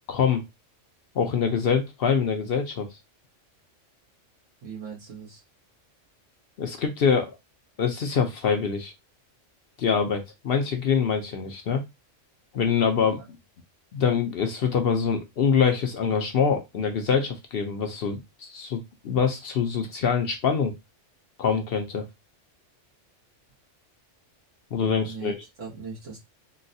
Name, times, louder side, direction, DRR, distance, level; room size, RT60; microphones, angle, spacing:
voice 1, 0.1-0.4 1.1-2.9 6.6-7.4 7.8-8.9 9.8-11.8 12.5-13.2 13.9-20.7 21.4-22.1 24.7-25.3, left 6 dB, 60° left, 5 dB, 0.7 m, -24 dB
voice 2, 4.6-5.4 13.0-13.3 25.0-26.2, right 5 dB, 80° right, -3 dB, 1.8 m, -39 dB
3.9 x 2.1 x 2.6 m, 0.20 s
omnidirectional pair, 1.3 m